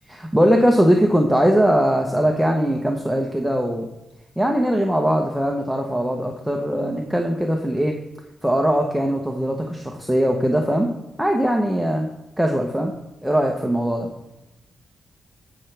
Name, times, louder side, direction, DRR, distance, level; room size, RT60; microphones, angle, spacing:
voice 1, 0.1-3.9 4.4-7.9 8.4-10.9 11.2-12.1 12.4-12.9 13.2-14.1, equal, ahead, 1 dB, 0.9 m, -20 dB
14.5 x 5.9 x 3.4 m, 0.97 s
cardioid pair, 105°, 0 cm